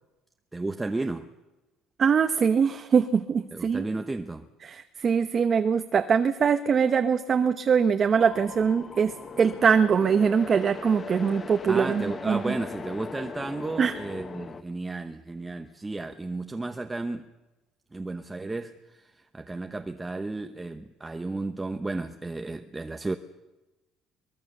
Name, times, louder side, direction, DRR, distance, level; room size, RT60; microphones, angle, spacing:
voice 1, 0.5-1.3 3.5-4.5 11.7-17.2 17.9-23.2, right 2 dB, 15° right, 1.0 m, -33 dB
voice 2, 2.0-3.8 4.6-12.4 13.8-13.9, right 6 dB, 35° right, 1.0 m, -23 dB
sound 1, 8.2-14.6, left 5 dB, 30° left, 1.3 m, -39 dB
23.5 x 20.0 x 6.8 m
cardioid pair, 130°, 0 cm